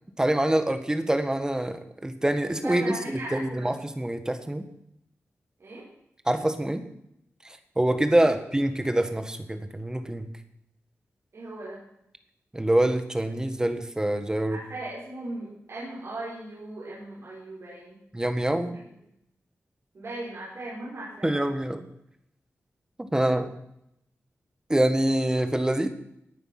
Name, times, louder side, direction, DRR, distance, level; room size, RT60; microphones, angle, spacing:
voice 1, 0.2-4.7 6.2-6.8 7.4-10.3 12.5-14.6 18.1-18.8 21.2-21.9 23.0-23.5 24.7-25.9, right 1 dB, 15° right, 9 dB, 1.5 m, -25 dB
voice 2, 2.6-3.7 5.6-5.9 11.3-11.8 14.5-18.0 19.9-21.4, right 2 dB, 60° right, -7 dB, 6.3 m, -38 dB
17.5 x 9.5 x 6.0 m, 0.78 s
wide cardioid pair, 110°, 5 cm